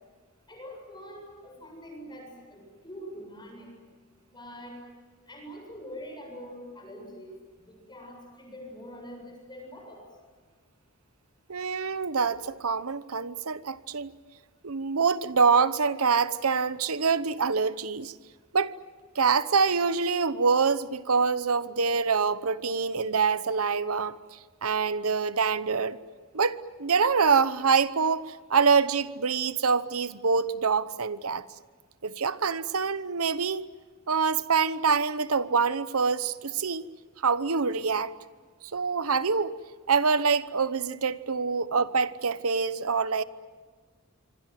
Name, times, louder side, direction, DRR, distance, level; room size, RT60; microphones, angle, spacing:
voice 1, 0.5-3.7 4.3-4.8 5.3-7.3 7.7-10.0, equal, 20° left, 7.9 m, -44 dB
voice 2, 11.5-14.1 14.6-18.1 18.5-18.7 19.1-24.2 24.6-26.0 26.3-31.4 32.0-33.7 34.1-36.9 37.2-38.1 38.7-39.6 39.9-43.2, right 5 dB, 85° right, 1.0 m, -25 dB
26.5 x 25.0 x 7.6 m
head